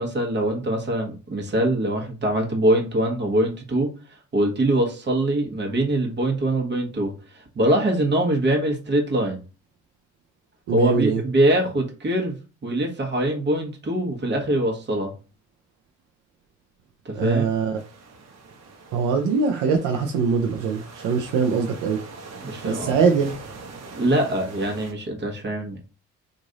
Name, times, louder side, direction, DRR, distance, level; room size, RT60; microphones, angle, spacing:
voice 1, 0.0-3.9 4.3-9.4 10.7-12.4 12.6-15.1 17.0-17.5 22.4-23.0 24.0-25.8, right 1 dB, 35° right, 1.2 m, -23 dB
voice 2, 10.7-11.2 17.1-17.8 18.9-22.0 22.6-23.3, right 5 dB, 80° right, 0.6 m, -22 dB
sound 1, 17.8-24.9, right 3 dB, 60° right, 0.9 m, -42 dB
3.1 x 2.5 x 3.8 m
cardioid pair, 90°, 30 cm